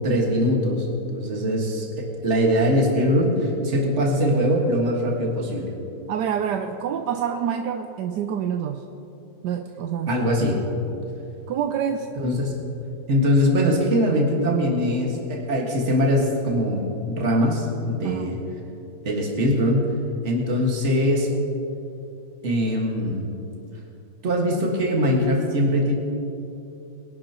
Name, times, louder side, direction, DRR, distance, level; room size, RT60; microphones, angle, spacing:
voice 1, 0.0-1.9 2.2-5.7 10.1-10.6 12.2-12.5 13.1-18.3 19.0-19.9 20.2-21.3 22.4-23.2 24.2-26.0, equal, 45° right, -1 dB, 2.0 m, -22 dB
voice 2, 6.1-8.8 9.4-10.2 11.5-12.1 18.0-18.4, right 8 dB, 80° right, 6 dB, 1.2 m, -27 dB
22.0 x 11.5 x 2.9 m, 2.9 s
omnidirectional pair, 1.8 m